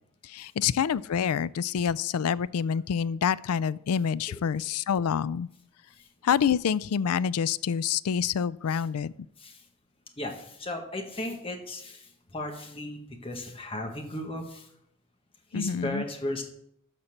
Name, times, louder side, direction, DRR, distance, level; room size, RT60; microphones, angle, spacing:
voice 1, 0.2-5.5 6.2-9.1 15.5-16.0, left 7 dB, 85° left, 19 dB, 0.4 m, -27 dB
voice 2, 10.2-14.7 15.5-16.4, left 1 dB, 25° left, 3 dB, 1.4 m, -36 dB
13.0 x 4.3 x 6.6 m, 0.72 s
head